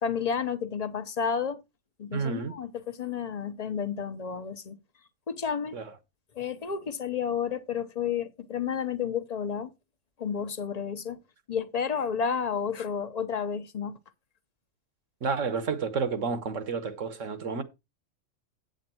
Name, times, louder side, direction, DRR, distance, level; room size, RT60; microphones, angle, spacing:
voice 1, 0.0-1.6 2.0-4.8 5.3-5.8 6.3-9.7 10.2-11.2 11.5-14.0, left 7 dB, 35° left, 0.9 m, -31 dB
voice 2, 2.1-2.5 5.7-5.8 15.2-17.6, right 5 dB, 70° right, 1.5 m, -30 dB
8.7 x 7.9 x 4.4 m
omnidirectional pair, 1.4 m